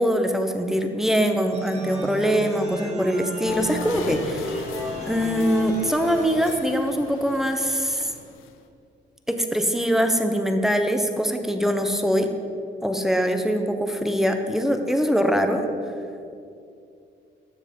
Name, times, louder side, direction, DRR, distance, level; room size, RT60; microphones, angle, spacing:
voice 1, 0.0-4.6 5.1-8.1 9.3-12.3 12.8-15.6, equal, ahead, 5 dB, 1.1 m, -23 dB
sound 1, 1.5-6.5, left 1 dB, 35° right, 2.6 m, -33 dB
sound 2, 3.4-8.6, left 6 dB, 90° left, 0.9 m, -38 dB
12.5 x 7.3 x 5.5 m, 2.5 s
cardioid pair, 90°, 20 cm